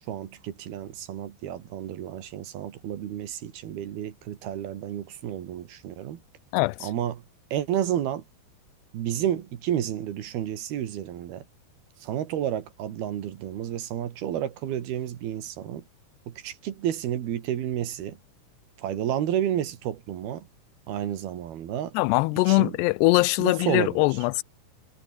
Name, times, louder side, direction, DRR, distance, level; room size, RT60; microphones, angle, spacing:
voice 1, 0.1-6.2 6.8-7.2 7.5-8.2 8.9-11.4 12.0-15.8 16.3-18.2 18.8-20.5 20.9-22.0 22.5-22.8 23.4-24.1, right 11 dB, 70° right, 3.6 m, -31 dB
voice 2, 6.5-6.9 21.9-24.4, left 23 dB, 85° left, 2.7 m, -22 dB
omnidirectional pair, 4.9 m